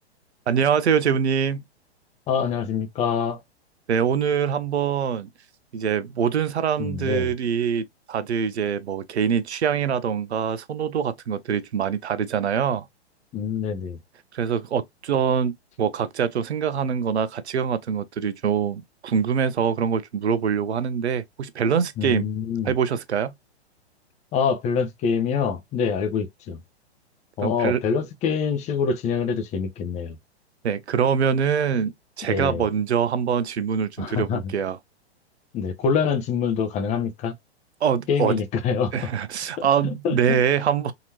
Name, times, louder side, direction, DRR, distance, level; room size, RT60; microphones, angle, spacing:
voice 1, 0.5-1.6 3.9-5.3 5.7-12.9 14.3-22.3 22.6-23.3 27.4-27.8 30.6-34.8 37.8-38.4 38.9-40.9, right 7 dB, 80° right, 0.7 m, -24 dB
voice 2, 2.3-3.4 6.8-7.3 13.3-14.0 22.0-22.7 24.3-26.6 27.4-30.2 32.3-32.7 34.0-34.5 35.5-37.3 38.1-39.1 39.6-40.4, left 6 dB, 20° left, 0.7 m, -25 dB
3.9 x 2.9 x 2.8 m
hypercardioid pair, 120°, 33 cm